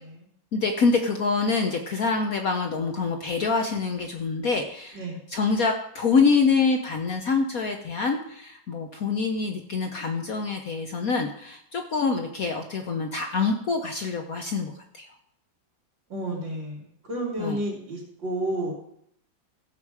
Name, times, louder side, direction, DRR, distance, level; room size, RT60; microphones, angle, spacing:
voice 1, 0.5-5.0 5.3-15.1 17.4-17.6, left 4 dB, 55° left, 4 dB, 1.1 m, -25 dB
voice 2, 16.1-18.7, right 1 dB, 70° right, -6 dB, 3.2 m, -31 dB
15.5 x 7.0 x 4.8 m, 0.71 s
omnidirectional pair, 2.1 m